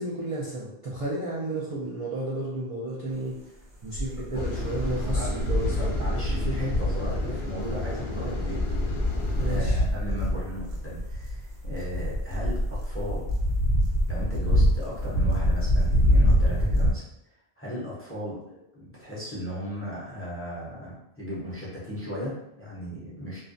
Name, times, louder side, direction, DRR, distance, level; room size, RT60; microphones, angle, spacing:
voice 1, 0.0-3.3 3.8-6.0 9.3-9.8, right 1 dB, 50° right, -6 dB, 0.4 m, -32 dB
sound 1, 4.0-7.3 8.2-16.9, equal, 85° right, 0.9 m, -25 dB
sound 2, 4.3-9.6, left 2 dB, 60° left, 0.6 m, -32 dB
voice 2, 6.0-8.6 9.5-13.2 14.1-17.0 17.6-23.4, equal, 15° left, -7 dB, 0.5 m, -36 dB
2.4 x 2.1 x 2.5 m, 0.83 s
omnidirectional pair, 1.0 m